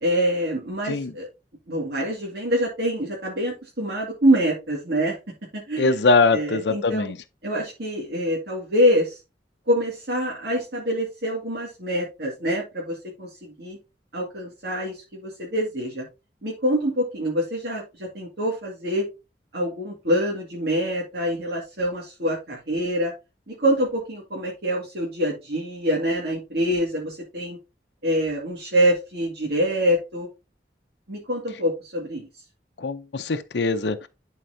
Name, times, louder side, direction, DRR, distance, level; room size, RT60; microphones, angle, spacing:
voice 1, 0.0-1.3 1.7-5.2 5.5-6.0 6.3-7.1 7.4-9.2 9.7-13.8 14.1-16.1 16.4-19.1 19.5-23.1 23.5-27.6 28.0-30.3 31.1-32.3, equal, 65° right, 2.1 m, -25 dB
voice 2, 5.8-7.2 32.8-34.1, left 3 dB, 70° left, 0.6 m, -22 dB
11.0 x 4.6 x 2.7 m
head